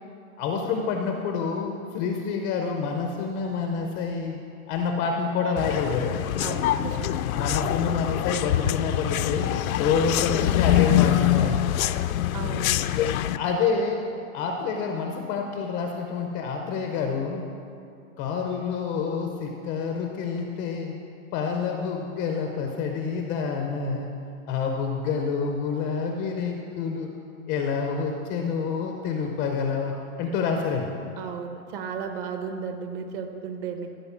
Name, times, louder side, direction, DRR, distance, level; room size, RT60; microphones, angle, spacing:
voice 1, 0.4-4.4 4.7-6.3 7.3-9.5 9.8-11.6 13.3-14.0 14.3-17.4 18.2-20.9 21.3-24.1 24.5-27.1 27.5-30.9, left 5 dB, 20° left, 3 dB, 0.5 m, -28 dB
sound 1, 5.6-13.4, left 12 dB, 75° left, 0.6 m, -24 dB
voice 2, 6.4-7.3 12.3-12.7 31.2-33.9, right 6 dB, 40° right, 6 dB, 1.1 m, -34 dB
14.0 x 5.3 x 7.1 m, 2.5 s
hypercardioid pair, 150°, 42 cm